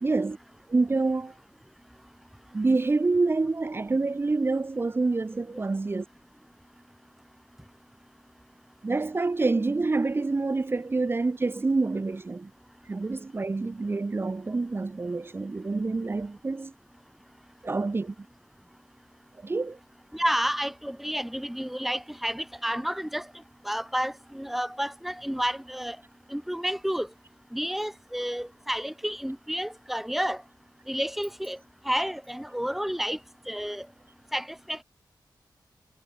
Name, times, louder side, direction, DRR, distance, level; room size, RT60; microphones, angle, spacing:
voice 1, 0.0-0.4 0.7-1.3 2.5-6.0 8.8-12.5 12.9-16.7 17.6-18.1 19.4-19.8, right 3 dB, 30° right, 3.0 m, -27 dB
voice 2, 20.1-23.3 23.6-26.0 26.3-27.1 27.5-30.4 30.9-31.6 31.9-33.2 33.5-33.9 34.3-34.8, equal, 5° right, 4.1 m, -30 dB
wide cardioid pair, 175°, 8 cm